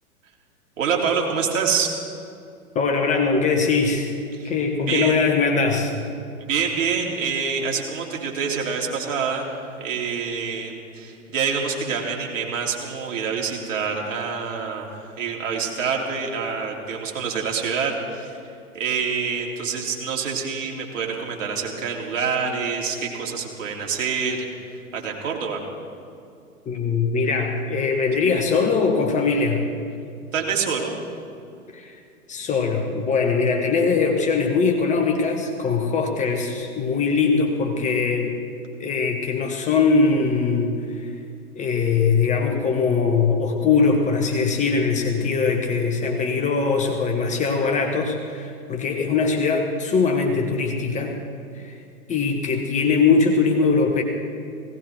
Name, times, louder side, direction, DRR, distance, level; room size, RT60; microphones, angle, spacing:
voice 1, 0.8-1.9 4.3-4.5 4.9-5.2 6.4-18.4 18.7-24.5 24.9-25.6 30.3-31.0, right 6 dB, 55° right, 0 dB, 3.2 m, -26 dB
voice 2, 2.7-4.1 4.4-6.0 26.7-29.7 31.7-31.9 32.3-38.3 38.8-41.1 41.5-51.2 51.5-51.7 52.1-54.0, left 4 dB, 15° left, 3 dB, 1.1 m, -21 dB
18.0 x 17.5 x 4.5 m, 2.4 s
hypercardioid pair, 120°, 44 cm